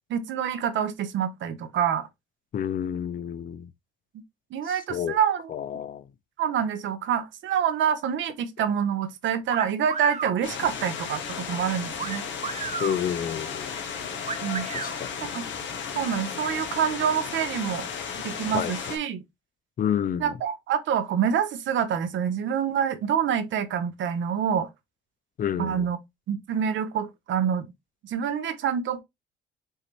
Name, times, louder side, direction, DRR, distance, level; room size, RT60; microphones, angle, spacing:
voice 1, 0.1-2.1 4.5-5.5 6.4-12.2 14.4-14.7 15.3-15.4 15.9-17.9 18.2-19.2 20.2-24.7 25.6-26.0 26.3-27.7 28.0-29.0, right 8 dB, 70° right, 0.8 m, -26 dB
voice 2, 2.5-3.7 4.9-5.2 5.5-6.0 12.8-13.8 14.7-15.1 18.5-18.7 19.8-20.3 25.4-25.9, left 9 dB, 45° left, 0.4 m, -29 dB
sound 1, 9.5-10.4 12.0-13.0 14.3-15.0, right 6 dB, 35° right, 0.6 m, -33 dB
sound 2, 10.4-19.0, left 6 dB, 70° left, 1.1 m, -34 dB
5.5 x 2.8 x 3.1 m
cardioid pair, 90°, 20 cm